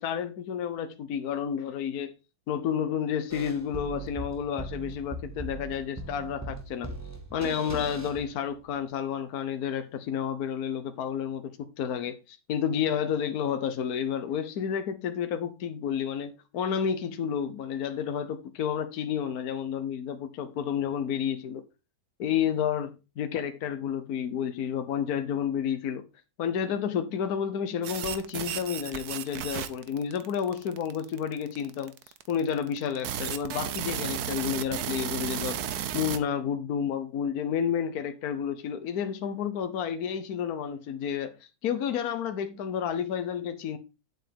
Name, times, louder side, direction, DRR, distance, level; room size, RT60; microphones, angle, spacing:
voice 1, 0.0-2.1 2.5-6.9 7.3-21.6 22.2-26.0 26.4-31.9 32.3-35.6 35.9-41.4 41.6-43.8, left 8 dB, 70° left, 1.4 m, -30 dB
sound 1, 3.3-8.8, right 2 dB, 10° right, 1.4 m, -39 dB
sound 2, 27.8-36.2, right 9 dB, 75° right, 1.4 m, -34 dB
9.2 x 8.0 x 3.6 m
omnidirectional pair, 1.7 m